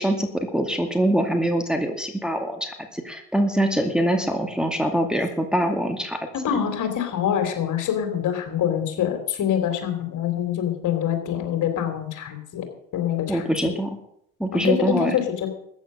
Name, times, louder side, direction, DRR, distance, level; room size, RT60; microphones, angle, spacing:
voice 1, 0.0-6.2 13.3-14.0 14.4-15.1, right 1 dB, ahead, 3 dB, 2.2 m, -24 dB
voice 2, 6.4-12.7 12.9-13.7 14.5-15.5, left 9 dB, 50° left, 6 dB, 3.5 m, -25 dB
14.5 x 9.5 x 6.5 m, 0.74 s
hypercardioid pair, 65°, 39 cm